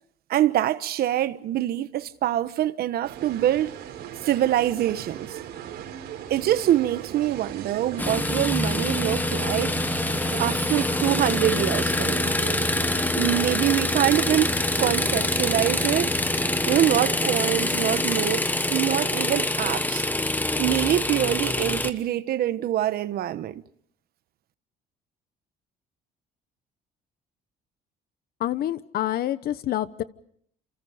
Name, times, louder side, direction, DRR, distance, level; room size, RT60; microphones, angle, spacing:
voice 1, 0.3-3.7 4.2-5.4 6.3-9.8 10.4-12.4 13.1-16.1 16.7-20.1 20.6-23.6, right 12 dB, 65° right, 1.1 m, -25 dB
sound 1, 3.0-18.4, right 9 dB, 80° right, 5.0 m, -39 dB
sound 2, 8.0-21.9, left 2 dB, 10° left, 1.3 m, -25 dB
voice 2, 28.4-30.0, left 13 dB, 65° left, 1.1 m, -27 dB
28.0 x 28.0 x 5.1 m
cardioid pair, 110°, 17 cm